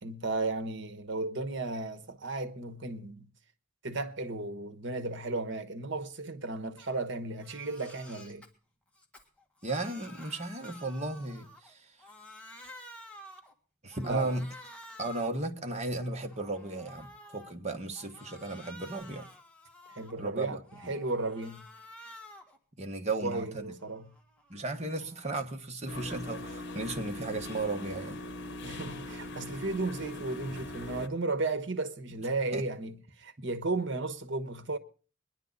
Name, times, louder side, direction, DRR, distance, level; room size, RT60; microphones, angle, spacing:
voice 1, 0.0-3.3 3.8-8.4 14.0-14.4 19.9-21.7 23.2-24.1 28.6-34.8, right 2 dB, 65° right, 1.2 m, -34 dB
Crying sobbing, 6.8-7.0 7.3-8.5 8.9-11.7 12.0-13.5 13.9-15.4 15.9-17.5 17.9-20.2 20.6-22.6 23.0-25.3, left 1 dB, 5° left, 2.0 m, -51 dB
voice 2, 9.6-11.9 13.8-14.5 15.0-17.1 17.3-19.3 20.2-20.9 22.8-23.7 24.5-28.2 32.5-32.7, right 2 dB, 35° right, 1.4 m, -35 dB
sound 1, 25.9-31.1, left 1 dB, 60° left, 1.3 m, -41 dB
22.5 x 10.5 x 4.0 m
head